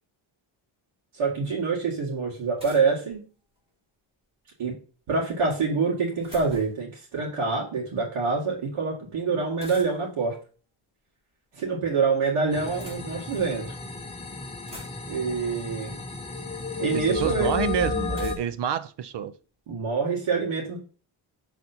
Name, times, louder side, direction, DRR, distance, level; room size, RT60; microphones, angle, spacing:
voice 1, 1.1-3.2 4.6-4.8 5.1-10.3 11.5-13.7 15.1-16.0 16.8-17.5 19.7-20.8, right 4 dB, 80° right, 2.3 m, -26 dB
sound 1, 2.6-3.7 5.7-6.9 9.6-10.2 11.3-11.9 12.5-13.5 14.1-14.2 14.4-15.3 16.4-16.5 18.1-19.7, equal, 10° right, 3.4 m, -48 dB
sound 2, 12.5-18.4, left 4 dB, 10° left, 0.8 m, -32 dB
voice 2, 16.9-19.3, right 8 dB, 55° right, 0.6 m, -28 dB
6.8 x 4.1 x 4.4 m
wide cardioid pair, 140°, 50 cm